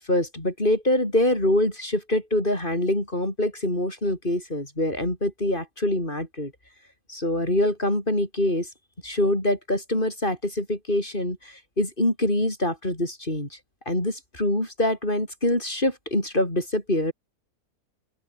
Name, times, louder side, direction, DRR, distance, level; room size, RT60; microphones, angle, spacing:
voice 1, 0.0-6.5 7.1-8.7 9.0-13.5 13.9-17.1, left 1 dB, 35° left, 5.9 m, -25 dB
open air
omnidirectional pair, 1.6 m